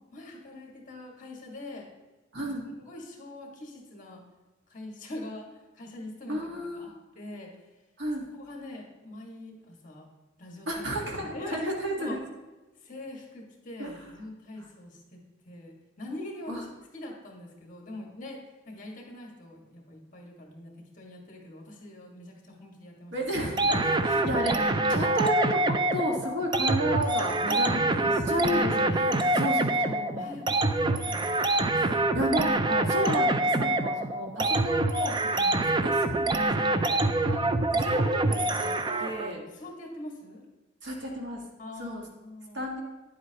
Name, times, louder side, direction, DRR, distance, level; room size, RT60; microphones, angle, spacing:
voice 1, 0.1-1.9 2.8-4.2 4.7-5.5 5.7-7.5 8.3-10.1 10.4-10.9 11.3-11.6 12.0-12.2 12.8-18.4 18.7-23.3 23.7-24.4 27.5-28.5 28.9-32.2 33.5-33.8 38.8-40.4 41.6-42.6, left 1 dB, 40° left, 0 dB, 1.7 m, -43 dB
voice 2, 2.3-2.6 6.3-6.9 8.0-8.2 10.7-12.2 13.8-14.0 16.5-16.6 23.1-23.7 24.1-30.3 31.7-38.7 39.0-39.4 40.8-41.4 41.8-42.0 42.5-42.8, equal, 65° right, 0 dB, 1.6 m, -32 dB
sound 1, 23.6-39.3, right 2 dB, 25° right, 0.4 m, -26 dB
10.0 x 7.7 x 2.9 m, 1.2 s
head